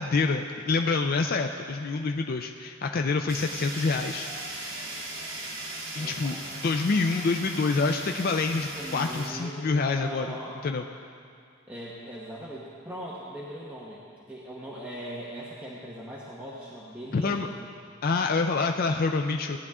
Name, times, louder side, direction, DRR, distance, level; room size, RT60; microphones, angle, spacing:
voice 1, 0.0-4.3 6.0-10.3 10.6-10.8 17.1-17.5 18.0-19.6, left 4 dB, 50° left, 4 dB, 0.4 m, -27 dB
Fire, 3.3-9.3, right 2 dB, 75° right, 2.6 m, -38 dB
voice 2, 6.0-6.6 8.7-10.6 11.7-14.0 14.3-17.6, equal, 10° right, -7 dB, 1.2 m, -40 dB
17.5 x 10.0 x 3.6 m, 2.3 s
head